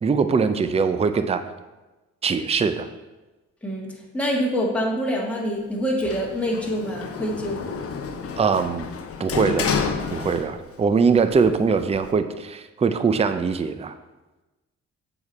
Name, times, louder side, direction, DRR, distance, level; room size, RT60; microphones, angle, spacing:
voice 1, 0.0-1.4 2.2-2.9 8.4-8.9 9.2-9.8 10.1-13.9, right 5 dB, 20° right, 10 dB, 0.5 m, -22 dB
voice 2, 4.1-7.7, equal, 5° left, -3 dB, 1.6 m, -25 dB
Sliding door, 6.0-10.8 11.2-12.1, left 6 dB, 50° left, 0.7 m, -30 dB
7.2 x 4.9 x 4.1 m, 1.1 s
cardioid pair, 80°, 30 cm